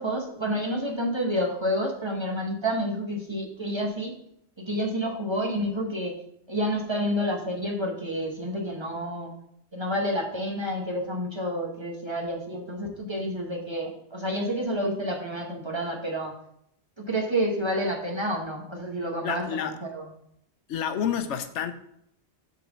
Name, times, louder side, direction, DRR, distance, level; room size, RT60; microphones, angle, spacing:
voice 1, 0.0-4.1 4.6-6.2 6.5-9.3 9.7-16.3 17.0-20.0, equal, 25° right, 0 dB, 1.1 m, -29 dB
voice 2, 19.2-19.8 20.7-21.7, left 8 dB, 85° left, 9 dB, 1.0 m, -29 dB
7.1 x 3.9 x 6.0 m, 0.72 s
omnidirectional pair, 1.2 m